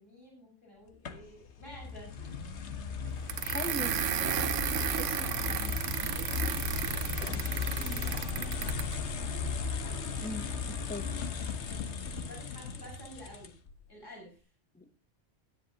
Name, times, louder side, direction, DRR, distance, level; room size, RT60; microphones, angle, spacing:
voice 1, 0.0-2.4 6.1-6.6 7.3-10.3 10.7-11.2 12.1-13.5 13.9-14.5, equal, 40° left, -2 dB, 6.0 m, -52 dB
sound 1, 1.0-13.7, left 5 dB, 65° left, 1.3 m, -36 dB
voice 2, 3.3-4.0 4.9-6.1 7.2-8.0 10.2-11.1 14.7-14.8, left 1 dB, 10° left, 9 dB, 0.8 m, -42 dB
sound 2, 3.3-8.9, right 9 dB, 80° right, 1.1 m, -33 dB
18.0 x 10.5 x 2.9 m, 0.31 s
omnidirectional pair, 1.2 m